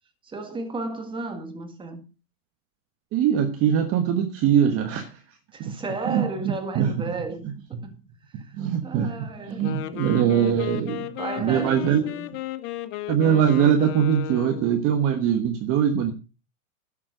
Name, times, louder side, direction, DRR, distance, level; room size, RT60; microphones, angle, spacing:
voice 1, 0.2-2.0 5.5-7.8 8.3-9.7 11.2-12.3, right 3 dB, 10° right, 1.7 m, -34 dB
voice 2, 3.1-5.1 5.6-5.8 6.1-6.9 7.7-7.9 8.6-11.0 11.4-12.0 13.1-16.1, right 8 dB, 30° right, 1.3 m, -22 dB
Wind instrument woodwind instrument, 9.5-14.8, left 15 dB, 25° left, 0.6 m, -34 dB
11.5 x 7.4 x 5.1 m
supercardioid pair, 145°, 46 cm